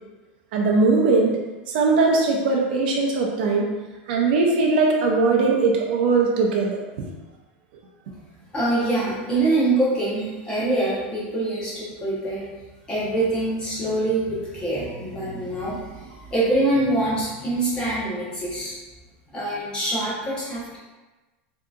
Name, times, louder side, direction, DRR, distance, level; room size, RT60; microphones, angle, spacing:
voice 1, 0.5-1.4 1.7-3.7 4.1-7.1, right 3 dB, 70° right, -1 dB, 0.5 m, -20 dB
voice 2, 8.5-12.5 12.9-18.7 19.3-20.8, right 2 dB, 15° left, -8 dB, 0.9 m, -24 dB
3.6 x 2.7 x 2.4 m, 1.2 s
supercardioid pair, 155°, 5 cm